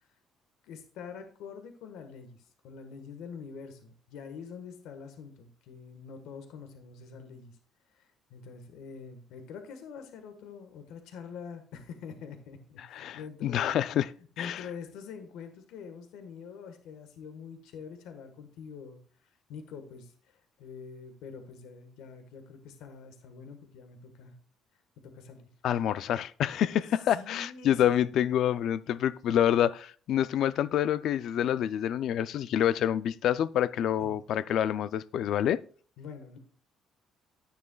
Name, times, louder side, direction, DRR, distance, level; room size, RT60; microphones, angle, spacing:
voice 1, 0.6-7.6 8.0-13.8 14.2-19.0 19.5-24.3 25.0-25.5 27.1-27.9 34.0-34.1 36.0-36.4, left 6 dB, 85° left, 1.4 m, -45 dB
voice 2, 12.9-14.1 14.4-14.6 25.6-35.6, left 10 dB, 65° left, 0.4 m, -27 dB
10.0 x 9.5 x 2.3 m
cardioid pair, 125°, 0 cm